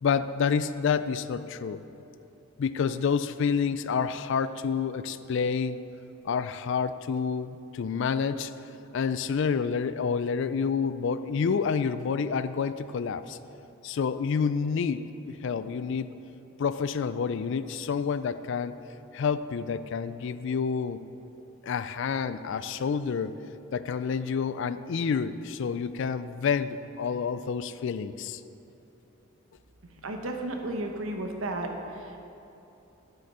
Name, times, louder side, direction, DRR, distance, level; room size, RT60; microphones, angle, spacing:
voice 1, 0.0-1.8 2.6-5.8 6.2-8.5 8.9-13.4 13.8-16.1 16.6-18.8 19.1-21.0 21.6-23.3 23.7-28.4, left 6 dB, 60° left, 13 dB, 0.3 m, -28 dB
voice 2, 29.8-31.7 32.0-32.2, right 2 dB, 75° right, 3 dB, 1.0 m, -33 dB
9.1 x 7.8 x 5.5 m, 2.9 s
head